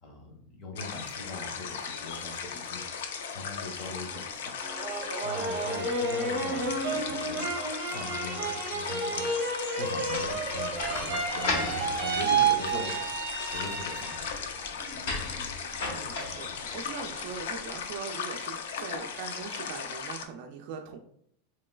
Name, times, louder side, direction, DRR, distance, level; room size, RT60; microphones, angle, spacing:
voice 1, 0.0-2.8 3.3-4.6 5.2-7.5 7.9-9.5 9.8-13.0 13.5-14.3 14.9-15.1, left 3 dB, 35° left, 3 dB, 0.7 m, -41 dB
sound 1, 0.8-20.3, left 6 dB, 80° left, 0.4 m, -37 dB
sound 2, 4.6-14.4 14.8-15.5, right 4 dB, 35° right, 0.8 m, -31 dB
sound 3, 10.1-17.8, left 3 dB, 65° left, 0.8 m, -38 dB
voice 2, 15.9-21.0, right 6 dB, 50° right, 2 dB, 0.4 m, -41 dB
3.1 x 3.0 x 2.2 m, 0.67 s
supercardioid pair, 160°, 0 cm